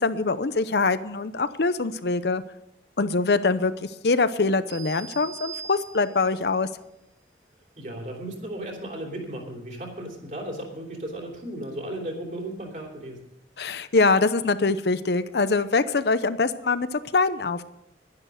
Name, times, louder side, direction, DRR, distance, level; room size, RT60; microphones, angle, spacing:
voice 1, 0.0-2.4 3.0-6.7 13.6-17.6, left 3 dB, 65° left, 13 dB, 0.7 m, -23 dB
sound 1, 4.7-6.4, right 6 dB, 65° right, 2.4 m, -41 dB
voice 2, 7.8-13.2, right 1 dB, 45° right, 1 dB, 3.2 m, -35 dB
11.5 x 10.5 x 6.4 m, 0.87 s
head